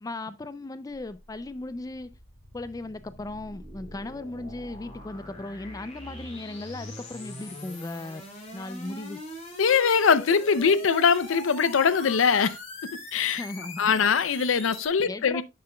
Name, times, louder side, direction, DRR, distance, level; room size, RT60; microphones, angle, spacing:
voice 1, 0.0-2.1 2.5-8.2 8.5-9.2 13.4-14.1 15.0-15.4, left 2 dB, 20° left, 0.3 m, -37 dB
sound 1, 0.9-14.9, left 1 dB, 35° left, 2.9 m, -42 dB
voice 2, 9.6-12.6 13.1-13.4 13.8-15.4, left 6 dB, 80° left, 0.5 m, -22 dB
10.5 x 6.7 x 2.2 m
head